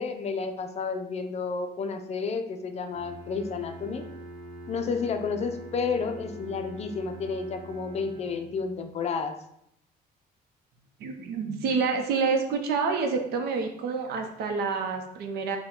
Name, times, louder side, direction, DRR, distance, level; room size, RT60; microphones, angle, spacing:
voice 1, 0.0-4.0 4.7-9.3, left 5 dB, 40° left, 6 dB, 0.5 m, -31 dB
Bowed string instrument, 2.9-8.8, right 1 dB, 10° right, 1.4 m, -44 dB
voice 2, 11.0-15.6, right 5 dB, 70° right, 4 dB, 0.7 m, -28 dB
4.4 x 2.2 x 3.7 m, 0.74 s
cardioid pair, 110°, 17 cm